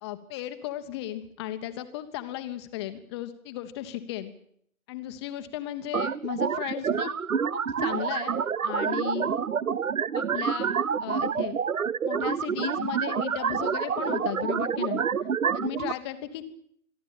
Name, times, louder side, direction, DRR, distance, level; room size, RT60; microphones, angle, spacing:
voice 1, 0.0-4.3 4.9-7.1 7.5-9.3 10.1-11.6 12.0-15.0 15.5-16.5, left 12 dB, 20° left, 9 dB, 1.1 m, -35 dB
sound 1, 5.9-15.9, right 7 dB, 75° right, 0.8 m, -28 dB
26.0 x 12.0 x 9.1 m, 0.67 s
figure-of-eight pair, 140°, 42 cm